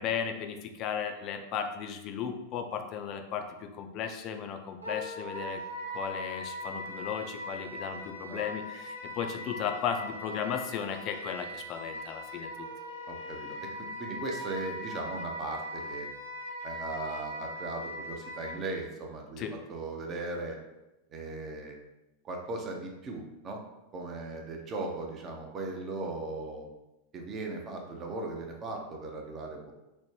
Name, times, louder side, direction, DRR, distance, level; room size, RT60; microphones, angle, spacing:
voice 1, 0.0-5.6 5.9-12.7 19.4-19.5, left 7 dB, 35° left, 5 dB, 0.3 m, -35 dB
Wind instrument woodwind instrument, 4.8-18.6, left 1 dB, 90° right, 0.6 m, -40 dB
voice 2, 13.1-16.1 16.6-19.4 19.7-20.6 21.1-21.8 22.2-23.6 23.9-26.7 27.1-29.7, right 2 dB, 30° right, 1 dB, 0.5 m, -38 dB
3.1 x 2.0 x 3.1 m, 0.97 s
figure-of-eight pair, 90°, 0 cm